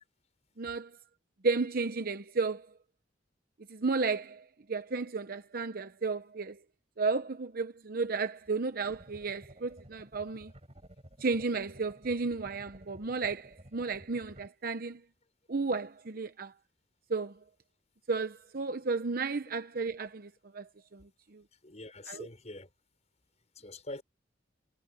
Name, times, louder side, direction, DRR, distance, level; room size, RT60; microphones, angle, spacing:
voice 1, 0.6-1.0 1.4-2.7 3.7-6.6 7.0-10.5 11.2-15.0 15.5-16.5 17.1-17.3 18.1-21.4 22.1-22.3, right 4 dB, 55° right, 0.8 m, -33 dB
sound 1, 8.9-14.5, right 1 dB, 35° right, 5.4 m, -54 dB
voice 2, 21.5-22.7 23.5-24.0, left 2 dB, 40° left, 6.1 m, -44 dB
head